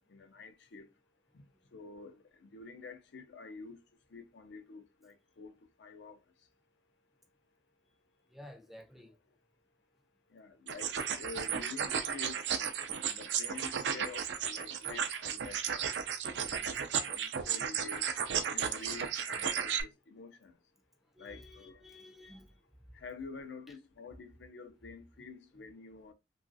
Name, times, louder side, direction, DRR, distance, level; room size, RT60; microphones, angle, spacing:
voice 1, 0.1-0.9 1.7-2.2 2.4-3.8 4.1-5.5 5.8-6.2 10.3-12.4 13.0-15.6 16.4-16.7 17.1-18.1 18.5-20.5 21.2-21.8 22.2-22.3 23.0-26.1, left 4 dB, 70° left, 0.5 m, -48 dB
voice 2, 8.3-9.2 14.0-14.1 21.2-22.5 23.7-23.8, left 1 dB, ahead, 0.4 m, -53 dB
sound 1, 10.7-19.8, right 7 dB, 70° right, 0.4 m, -34 dB
3.0 x 2.4 x 2.6 m
head